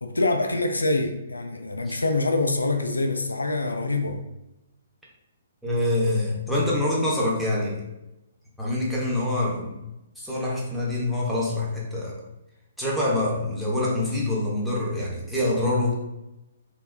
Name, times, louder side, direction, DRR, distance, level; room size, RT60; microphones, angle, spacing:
voice 1, 0.0-4.2, left 2 dB, 85° left, 5 dB, 0.3 m, -25 dB
voice 2, 5.6-7.8 8.6-9.8 10.2-12.2 12.8-16.0, left 1 dB, ahead, -7 dB, 0.8 m, -25 dB
3.5 x 2.2 x 2.2 m, 0.93 s
figure-of-eight pair, 130°, 0 cm